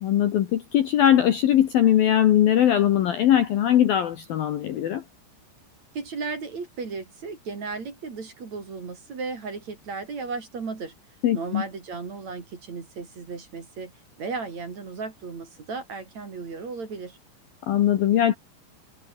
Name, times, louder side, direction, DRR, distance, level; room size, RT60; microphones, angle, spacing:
voice 1, 0.0-5.0 11.2-11.6 17.6-18.3, left 11 dB, 65° left, 2.6 m, -20 dB
voice 2, 5.9-10.9 11.3-13.9 14.2-17.2, right 4 dB, 35° right, 4.3 m, -35 dB
omnidirectional pair, 5.8 m